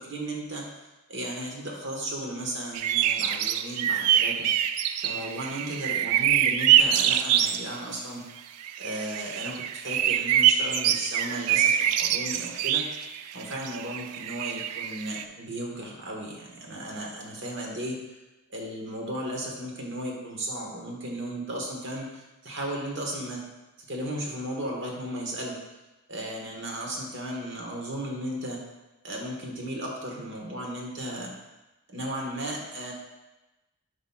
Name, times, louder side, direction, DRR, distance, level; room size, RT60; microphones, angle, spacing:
voice 1, 0.0-4.5 5.0-8.2 8.8-12.8 13.3-18.0 18.5-23.4 23.9-25.6 26.1-28.6 29.0-31.3 31.9-32.9, right 1 dB, 55° right, -1 dB, 1.3 m, -35 dB
sound 1, 2.7-7.7 8.6-15.2, right 10 dB, 85° right, 0.3 m, -25 dB
9.9 x 5.0 x 2.3 m, 1.0 s
head